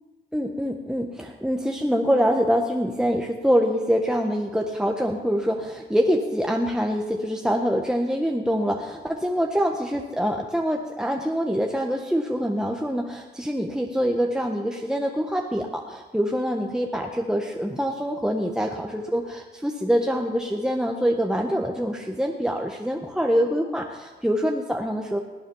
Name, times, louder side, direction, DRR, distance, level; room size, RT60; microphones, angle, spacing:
voice 1, 0.3-25.2, equal, 5° right, 1 dB, 1.5 m, -25 dB
19.0 x 8.5 x 5.7 m, 1.3 s
cardioid pair, 50°, 20 cm